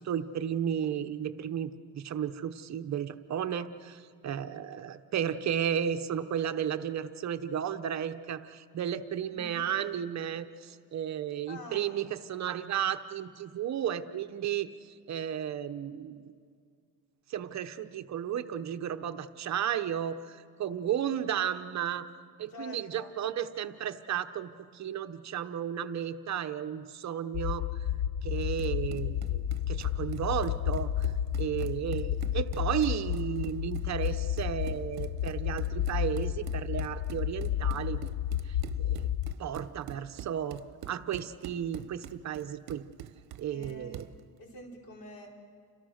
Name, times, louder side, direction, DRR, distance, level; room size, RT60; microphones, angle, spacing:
voice 1, 0.0-16.3 17.3-22.0 22.4-27.7 28.2-31.1 31.4-38.0 38.4-39.1 39.4-40.6 40.9-42.8 43.4-44.0, right 9 dB, 45° right, 9 dB, 0.9 m, -33 dB
voice 2, 9.3-9.6 11.5-12.0 22.5-23.1 43.5-44.0 44.4-45.3, left 2 dB, 65° left, 1 dB, 4.8 m, -46 dB
sound 1, 27.3-39.3, left 11 dB, 50° left, 0.6 m, -32 dB
Run, 28.4-44.2, right 12 dB, 75° right, 0.9 m, -46 dB
30.0 x 26.5 x 6.5 m, 2.2 s
cardioid pair, 160°, 37 cm